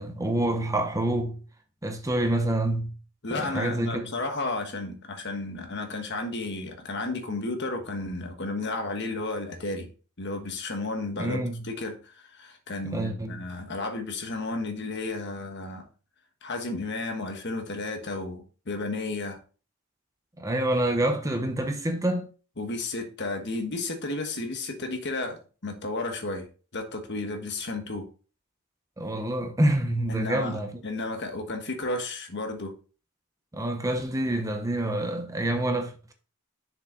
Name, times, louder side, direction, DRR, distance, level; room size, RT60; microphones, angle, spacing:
voice 1, 0.0-1.4 1.8-2.9 3.3-4.1 11.2-11.6 12.8-13.4 20.4-22.3 29.0-30.8 33.5-36.1, right 1 dB, 15° right, 0.8 m, -27 dB
voice 2, 3.2-9.9 10.2-15.9 16.4-19.4 22.6-26.5 26.7-28.1 30.1-32.7, left 2 dB, 55° left, 1.3 m, -33 dB
6.8 x 5.1 x 3.8 m
head